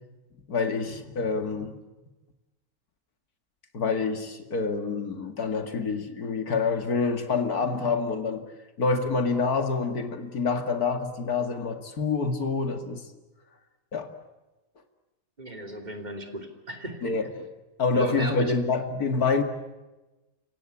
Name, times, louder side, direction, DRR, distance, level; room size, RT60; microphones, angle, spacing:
voice 1, 0.5-1.8 3.7-8.4 8.8-13.1 13.9-14.1 17.0-17.5 17.8-19.4, left 4 dB, 85° left, 7 dB, 2.7 m, -27 dB
voice 2, 15.4-17.0 17.9-18.5, right 1 dB, 30° right, 4 dB, 3.2 m, -35 dB
29.5 x 17.0 x 10.0 m, 1.1 s
omnidirectional pair, 1.6 m